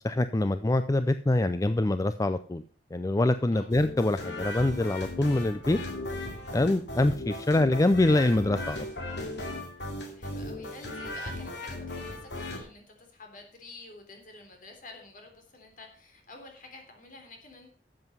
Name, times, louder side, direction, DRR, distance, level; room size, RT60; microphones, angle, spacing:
voice 1, 0.0-2.6 2.9-5.8 6.5-8.9, left 2 dB, 20° left, 11 dB, 0.4 m, -25 dB
sound 1, 3.7-12.6, left 1 dB, 75° left, 2.8 m, -37 dB
voice 2, 10.1-17.7, left 2 dB, 50° left, 4 dB, 3.5 m, -49 dB
12.5 x 7.8 x 5.5 m, 0.43 s
head